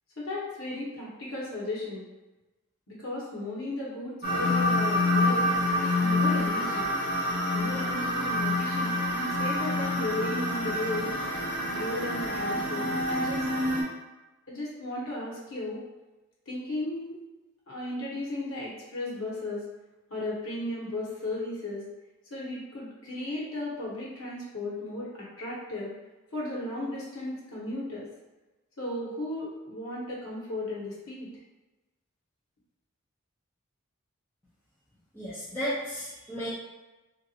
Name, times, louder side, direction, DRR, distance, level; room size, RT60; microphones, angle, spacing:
voice 1, 0.2-2.0 2.9-5.5 5.8-6.8 7.5-11.1 11.7-13.5 14.5-15.8 16.5-17.2 17.7-19.6 20.1-21.8 22.3-25.9 26.3-28.1 28.8-31.3, left 1 dB, 90° left, -6 dB, 1.0 m, -35 dB
sound 1, 4.2-13.8, left 1 dB, 45° left, 0.8 m, -27 dB
voice 2, 35.1-36.5, equal, 10° left, -12 dB, 0.6 m, -33 dB
2.8 x 2.5 x 2.7 m, 1.1 s
head